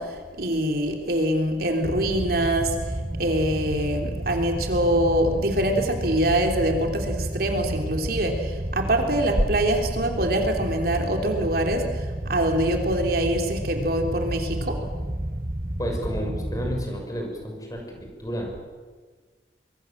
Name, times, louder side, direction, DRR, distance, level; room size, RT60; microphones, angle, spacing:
voice 1, 0.0-2.7 3.2-14.8, right 1 dB, 60° right, 3 dB, 3.5 m, -24 dB
sound 1, 1.8-16.9, right 1 dB, 25° right, 0.9 m, -31 dB
voice 2, 15.8-18.6, equal, 20° left, 2 dB, 6.2 m, -31 dB
25.0 x 23.5 x 7.5 m, 1.5 s
head